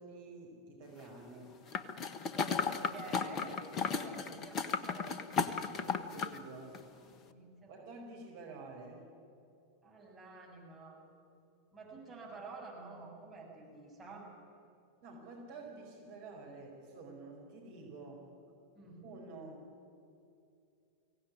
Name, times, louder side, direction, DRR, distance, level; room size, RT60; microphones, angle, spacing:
voice 1, 0.0-1.6 5.7-6.8 7.7-9.0 15.0-18.2 19.0-19.6, right 3 dB, 50° right, 0 dB, 5.1 m, -49 dB
sound 1, 1.7-6.4 6.7-6.8, left 5 dB, 30° left, 1.4 m, -35 dB
voice 2, 2.3-5.2 7.0-7.8 9.8-11.0 11.7-14.3 18.8-19.0, right 3 dB, 15° right, -2 dB, 7.2 m, -49 dB
23.5 x 17.5 x 9.9 m, 2.6 s
figure-of-eight pair, 90°, 0 cm